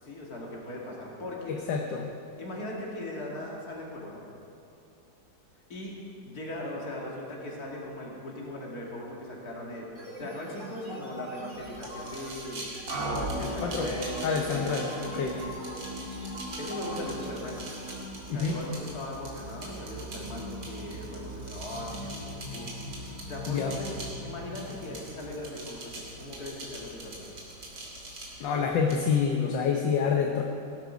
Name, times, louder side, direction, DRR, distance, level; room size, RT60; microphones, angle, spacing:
voice 1, 0.0-1.6 2.4-4.3 5.7-5.9 6.2-12.7 13.3-15.6 16.6-17.6 18.2-22.8 23.1-27.3, left 1 dB, 50° left, -3 dB, 2.8 m, -39 dB
voice 2, 1.5-2.1 13.4-13.9 14.2-15.4 18.3-18.6 23.5-23.8 28.4-30.4, left 6 dB, 70° left, 2 dB, 1.6 m, -27 dB
sound 1, 10.0-17.9, equal, 35° right, 3.0 m, -44 dB
sound 2, 11.5-29.0, right 2 dB, 80° right, 3.4 m, -44 dB
sound 3, 12.9-25.7, right 1 dB, 50° right, 1.9 m, -40 dB
17.0 x 12.0 x 5.1 m, 2.7 s
omnidirectional pair, 2.1 m